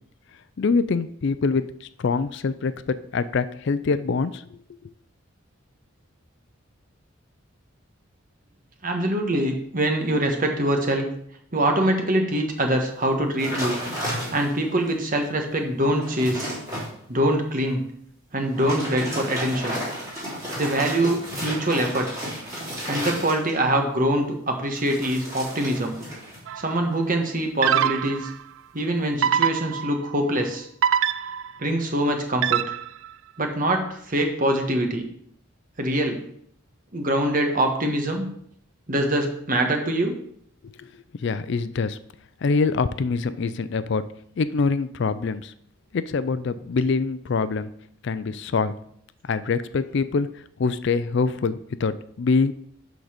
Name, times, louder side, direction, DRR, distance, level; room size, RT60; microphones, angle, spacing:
voice 1, 0.6-4.6 40.6-40.9 41.2-42.0 42.4-44.0 44.4-45.5 45.9-47.7 48.0-48.7 49.3-50.3 50.6-52.5, left 4 dB, 55° left, 13 dB, 0.4 m, -24 dB
voice 2, 8.8-11.1 11.5-13.8 14.3-16.5 17.1-17.8 18.3-19.8 20.6-22.1 22.9-26.0 26.6-28.3 28.7-30.7 31.6-32.6 33.4-35.0 35.8-36.2 36.9-38.3 38.9-40.1, right 1 dB, 40° right, 4 dB, 1.3 m, -24 dB
sound 1, 13.4-14.7 15.2-15.3 15.7-16.9 18.4-23.7 24.7-26.4 26.7-27.1, equal, 15° right, 3.9 m, -32 dB
sound 2, 26.5-26.8 27.6-28.3 29.2-30.1 30.8-31.6 32.4-33.1, right 9 dB, 65° right, 0.3 m, -23 dB
12.0 x 4.0 x 5.0 m, 0.67 s
head